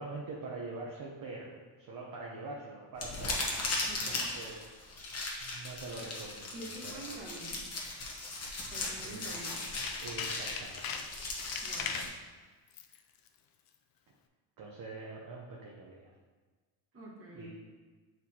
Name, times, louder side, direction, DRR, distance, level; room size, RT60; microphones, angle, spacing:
voice 1, 0.0-3.6 4.1-4.6 5.4-7.0 9.0-9.4 10.0-10.9 11.8-12.0 14.6-16.1 17.3-17.5, right 3 dB, 45° right, -3 dB, 0.7 m, -44 dB
sound 1, 3.0-12.1, left 2 dB, 30° left, 1.0 m, -38 dB
voice 2, 3.8-4.4 6.5-7.7 8.7-9.7 11.6-12.1 16.9-17.5, right 1 dB, 30° right, -3 dB, 1.2 m, -47 dB
Tools, 9.4-12.2 12.7-13.0 13.3-13.4, left 6 dB, 50° left, 0.5 m, -40 dB
7.8 x 4.4 x 2.8 m, 1.4 s
cardioid pair, 165°, 48 cm